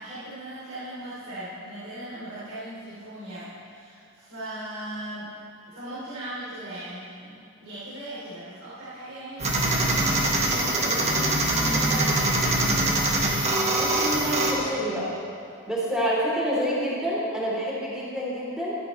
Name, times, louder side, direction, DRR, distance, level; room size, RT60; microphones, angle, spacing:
voice 1, 0.0-5.3 5.7-13.1, right 1 dB, 85° right, -11 dB, 3.2 m, -38 dB
sound 1, 9.4-14.5, right 2 dB, 35° right, 1.4 m, -23 dB
voice 2, 13.7-15.1 15.6-18.7, equal, 5° right, -8 dB, 3.1 m, -28 dB
15.5 x 11.5 x 3.2 m, 2.5 s
head